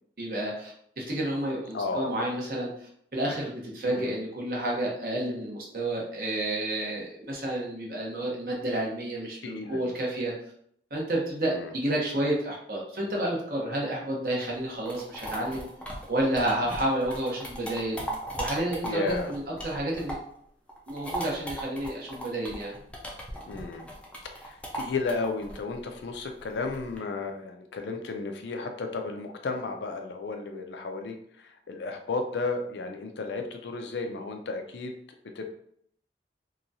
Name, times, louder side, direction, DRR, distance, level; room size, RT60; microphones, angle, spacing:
voice 1, 0.2-10.3 10.9-15.6 16.1-18.0 18.4-20.1 20.9-22.7, right 1 dB, 55° right, -3 dB, 0.8 m, -30 dB
voice 2, 1.7-2.2 3.8-4.1 9.4-9.8 11.4-11.7 18.8-19.3 23.5-23.9 24.2-34.9 35.4-35.5, left 3 dB, 85° left, 5 dB, 0.4 m, -33 dB
sound 1, 14.5-20.4 20.7-27.0, right 1 dB, 5° left, 0.4 m, -38 dB
2.9 x 2.3 x 2.6 m, 0.66 s
head